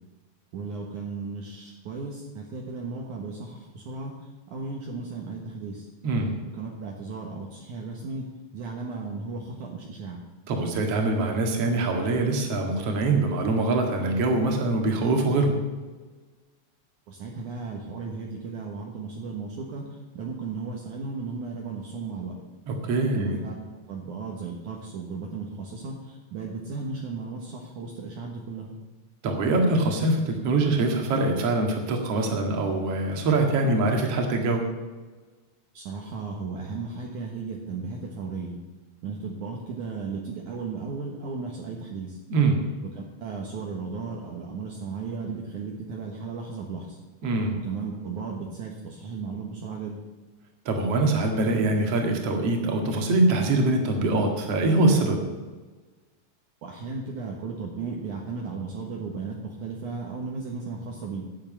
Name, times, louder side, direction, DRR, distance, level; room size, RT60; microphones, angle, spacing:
voice 1, 0.5-5.9 6.5-8.3 8.5-10.2 17.1-22.3 23.1-23.5 23.9-28.8 35.7-38.6 39.0-42.2 43.0-47.0 47.6-50.0 56.6-61.2, right 4 dB, 65° right, -1 dB, 2.6 m, -35 dB
voice 2, 10.5-15.6 22.7-23.4 29.2-34.6 42.3-42.6 47.2-47.5 50.7-55.2, right 2 dB, 50° right, 2 dB, 2.6 m, -23 dB
11.0 x 7.5 x 8.9 m, 1.3 s
omnidirectional pair, 4.2 m